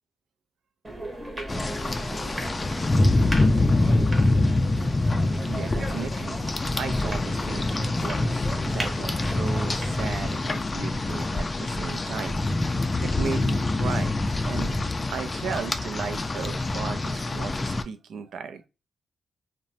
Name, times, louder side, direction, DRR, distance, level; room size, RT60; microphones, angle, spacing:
sound 1, 0.8-10.2, right 1 dB, 15° right, 0.8 m, -37 dB
Rain, 1.5-17.8, left 2 dB, 25° left, 0.3 m, -25 dB
voice 1, 5.5-6.4 6.7-12.4 13.0-14.1 14.5-14.8 15.1-18.7, right 6 dB, 90° right, 0.3 m, -35 dB
2.9 x 2.0 x 2.6 m
wide cardioid pair, 115°, 0 cm